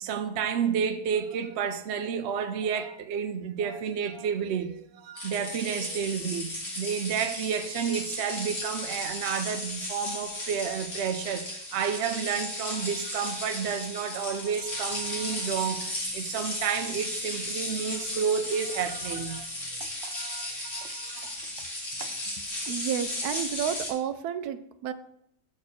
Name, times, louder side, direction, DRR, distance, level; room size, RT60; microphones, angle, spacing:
voice 1, 0.0-21.3 22.0-22.1, right 7 dB, 55° right, 0.8 m, -31 dB
sound 1, 5.2-23.9, left 1 dB, 55° left, 2.6 m, -35 dB
voice 2, 22.7-24.9, right 9 dB, 80° right, 1.1 m, -31 dB
7.3 x 4.6 x 6.3 m
omnidirectional pair, 1.6 m